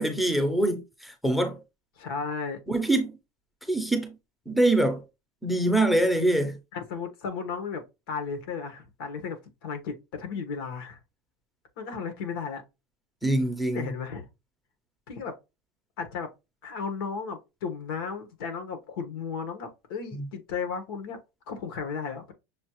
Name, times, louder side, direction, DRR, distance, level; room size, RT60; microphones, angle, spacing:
voice 1, 0.0-1.6 2.7-3.2 3.7-4.1 4.5-5.0 5.4-6.6 13.2-13.9, right 1 dB, ahead, 0.6 m, -24 dB
voice 2, 2.0-2.6 6.7-11.0 11.8-12.6 13.7-14.3 15.1-15.3 16.0-16.3 16.6-21.2 21.5-22.3, left 5 dB, 85° left, 1.4 m, -34 dB
6.4 x 2.4 x 3.0 m
supercardioid pair, 170°, 12 cm